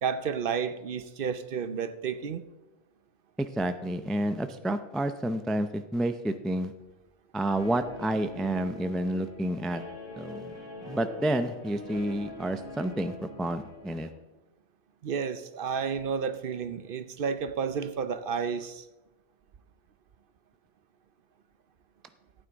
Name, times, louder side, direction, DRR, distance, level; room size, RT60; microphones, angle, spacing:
voice 1, 0.0-2.4 15.0-18.9, right 6 dB, 60° right, 12 dB, 0.8 m, -31 dB
voice 2, 3.4-6.7 7.3-9.8 10.2-10.6 10.8-14.1, right 1 dB, ahead, 9 dB, 0.3 m, -30 dB
Guitar, 7.5-14.1, left 2 dB, 70° left, 2.8 m, -43 dB
14.5 x 9.2 x 4.0 m, 1.0 s
omnidirectional pair, 1.1 m